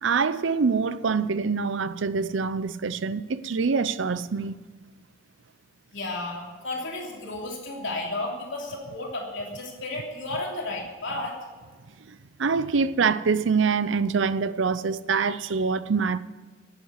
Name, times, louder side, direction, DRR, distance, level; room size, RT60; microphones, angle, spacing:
voice 1, 0.0-4.6 12.1-16.2, right 5 dB, 70° right, 0.6 m, -25 dB
voice 2, 5.9-11.4, left 2 dB, 70° left, 3.1 m, -33 dB
11.5 x 8.2 x 8.1 m
head